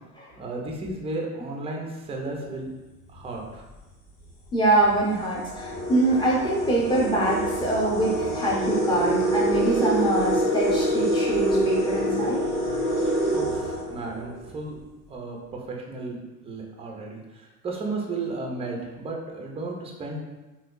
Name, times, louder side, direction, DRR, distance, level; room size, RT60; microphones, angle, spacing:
voice 1, 0.4-2.7 3.1-3.6 13.3-14.8 15.1-20.2, right 2 dB, 15° right, 0 dB, 0.5 m, -34 dB
sound 1, 3.1-3.4 4.2-4.3 4.8-14.5, equal, 40° left, 1.5 m, -26 dB
voice 2, 4.5-12.4, right 2 dB, 10° left, -5 dB, 0.9 m, -24 dB
3.4 x 2.7 x 2.5 m, 1.1 s
hypercardioid pair, 100°, 46 cm